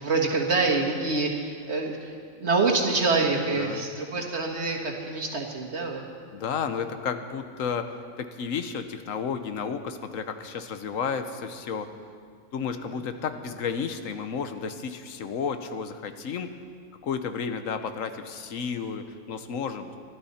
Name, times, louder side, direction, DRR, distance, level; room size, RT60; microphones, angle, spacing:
voice 1, 0.0-6.1 12.9-13.0, right 3 dB, 60° right, 0 dB, 1.9 m, -26 dB
voice 2, 3.6-3.9 6.3-11.9 12.5-16.5 17.0-20.0, left 6 dB, 85° left, 8 dB, 1.3 m, -32 dB
23.5 x 12.5 x 4.3 m, 2.1 s
omnidirectional pair, 1.3 m